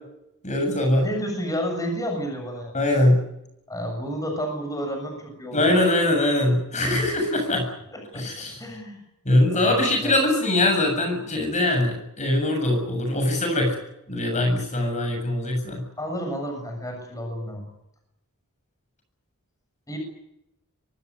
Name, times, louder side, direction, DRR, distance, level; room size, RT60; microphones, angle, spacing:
voice 1, 0.4-1.1 2.7-3.2 5.5-7.7 8.1-8.6 9.3-13.7 14.1-15.8, left 1 dB, 35° left, 4 dB, 7.3 m, -22 dB
voice 2, 1.0-2.7 3.7-5.8 7.9-9.0 9.5-10.1 16.0-17.6 19.9-20.0, equal, 15° left, 3 dB, 7.0 m, -31 dB
24.0 x 18.5 x 9.7 m, 0.83 s
head